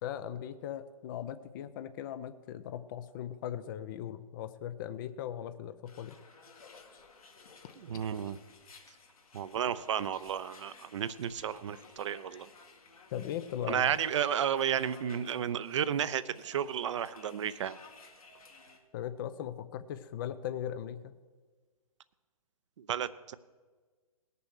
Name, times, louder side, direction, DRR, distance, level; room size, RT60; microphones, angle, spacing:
voice 1, 0.0-6.2 13.1-13.9 18.9-21.2, left 10 dB, 35° left, 12 dB, 0.6 m, -39 dB
sound 1, 5.9-18.8, left 4 dB, 70° left, 2.2 m, -56 dB
voice 2, 7.8-8.4 9.3-12.5 13.7-17.8 22.8-23.3, right 9 dB, 55° right, 15 dB, 0.7 m, -32 dB
18.5 x 6.9 x 6.3 m, 1.4 s
figure-of-eight pair, 130°, 19 cm